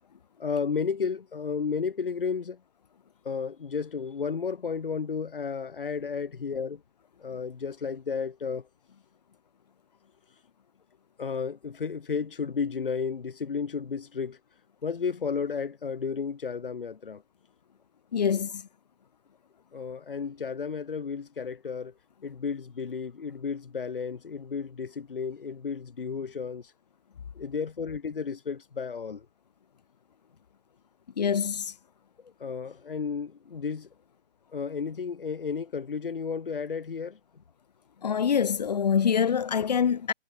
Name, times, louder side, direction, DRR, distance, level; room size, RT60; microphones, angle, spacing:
voice 1, 0.4-2.6 3.2-6.8 7.2-8.6 11.2-14.4 14.8-17.2 19.7-21.9 22.2-26.6 27.4-29.2 32.4-33.9 34.5-37.2, left 5 dB, 60° left, 2.4 m, -32 dB
voice 2, 18.1-18.6 31.2-31.7 38.0-40.1, left 7 dB, 40° left, 2.3 m, -25 dB
figure-of-eight pair, 160°, 31 cm